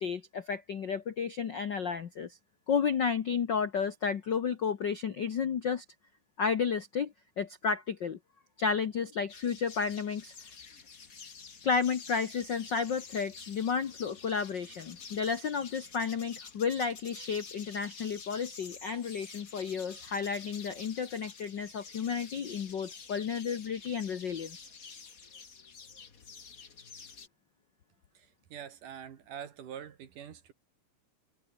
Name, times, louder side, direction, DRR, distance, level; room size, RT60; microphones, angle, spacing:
voice 1, 0.0-2.4 2.7-5.8 6.4-8.2 8.6-10.3 11.6-24.7, left 6 dB, 80° left, 1.0 m, -32 dB
sound 1, 9.3-27.3, left 5 dB, 35° left, 1.6 m, -49 dB
voice 2, 28.1-30.5, right 9 dB, 70° right, 3.4 m, -45 dB
omnidirectional pair, 4.0 m